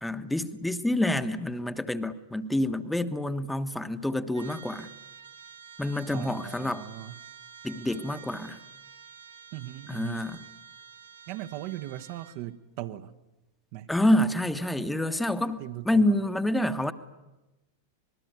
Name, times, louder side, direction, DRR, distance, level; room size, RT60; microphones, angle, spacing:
voice 1, 0.0-4.9 5.8-6.9 7.6-8.6 9.9-10.4 13.9-16.9, left 1 dB, 5° left, 10 dB, 1.3 m, -27 dB
Trumpet, 4.3-12.4, right 7 dB, 70° right, 3.2 m, -49 dB
voice 2, 6.1-7.2 9.5-10.3 11.3-13.2 13.7-13.9 15.6-16.2, right 14 dB, 45° right, 8 dB, 1.2 m, -39 dB
26.5 x 21.0 x 9.6 m, 1.0 s
figure-of-eight pair, 90°, 0 cm